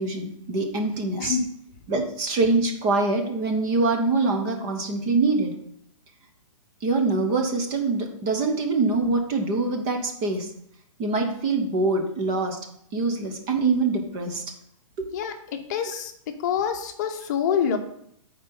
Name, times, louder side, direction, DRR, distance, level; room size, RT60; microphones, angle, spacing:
voice 1, 0.0-1.4 1.9-5.5 6.8-10.5 11.0-12.6 12.9-14.4, right 3 dB, 20° right, 3 dB, 0.8 m, -24 dB
voice 2, 15.1-16.1 16.4-17.8, left 7 dB, 35° left, 5 dB, 0.9 m, -26 dB
9.2 x 4.4 x 5.4 m, 0.71 s
hypercardioid pair, 170°, 17 cm